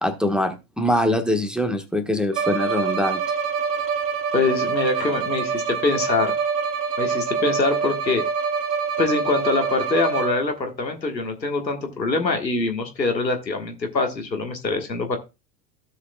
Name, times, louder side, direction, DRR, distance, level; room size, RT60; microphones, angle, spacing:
voice 1, 0.0-3.2, left 1 dB, ahead, 1.2 m, -23 dB
Bowed string instrument, 2.3-10.6, right 6 dB, 70° right, 1.2 m, -25 dB
voice 2, 4.3-6.4 7.0-8.2 9.0-15.2, left 3 dB, 90° left, 1.5 m, -24 dB
15.5 x 6.4 x 2.2 m
figure-of-eight pair, 80°, 50 cm